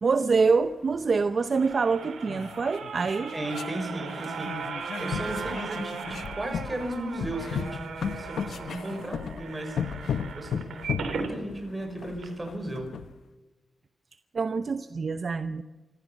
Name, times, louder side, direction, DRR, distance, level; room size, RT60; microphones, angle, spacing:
voice 1, 0.0-3.3 14.3-15.6, right 4 dB, 50° right, 10 dB, 0.8 m, -25 dB
sound 1, 0.6-0.7 1.7-1.8 2.0-3.8 4.1-13.1, left 7 dB, 80° left, 0.9 m, -35 dB
sound 2, 1.2-11.3 11.8-11.9 12.2-12.3, right 5 dB, 80° right, 3.8 m, -38 dB
voice 2, 3.3-10.7 11.1-12.9, right 1 dB, 20° right, 5 dB, 5.9 m, -35 dB
25.5 x 15.0 x 7.3 m, 1.2 s
cardioid pair, 100°, 0 cm